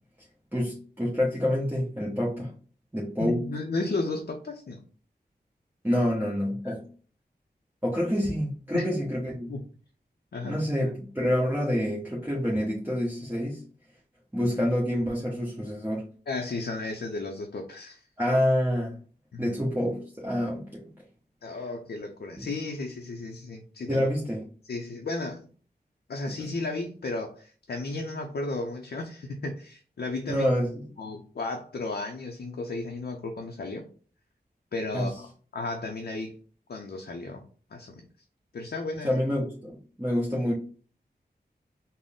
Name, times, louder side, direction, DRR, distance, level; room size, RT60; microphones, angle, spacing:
voice 1, 0.5-2.5 2.9-3.5 5.8-6.9 7.8-9.5 10.4-13.6 14.3-16.0 18.2-19.0 19.4-20.8 22.4-22.5 23.9-24.4 26.4-26.5 30.3-30.8 34.9-35.1 39.0-40.5, equal, 10° right, -6 dB, 1.0 m, -27 dB
voice 2, 3.2-4.8 6.6-6.7 8.7-8.8 9.5-9.6 10.3-10.6 16.3-18.1 19.3-19.6 21.4-24.1 24.7-25.5 26.1-30.5 31.0-33.9 34.7-36.4 36.7-37.4 37.7-38.0 38.5-39.1, left 2 dB, 65° left, 2 dB, 0.5 m, -34 dB
3.8 x 2.0 x 3.6 m, 0.41 s
wide cardioid pair, 55°, 17 cm